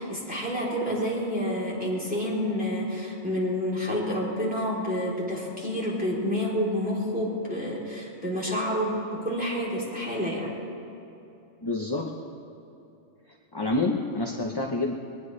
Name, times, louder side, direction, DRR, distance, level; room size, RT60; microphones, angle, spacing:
voice 1, 0.0-10.5, equal, 5° right, -6 dB, 3.5 m, -29 dB
voice 2, 11.6-12.1 13.3-14.9, left 2 dB, 20° left, 1 dB, 0.8 m, -28 dB
22.0 x 19.5 x 3.3 m, 2.8 s
omnidirectional pair, 1.3 m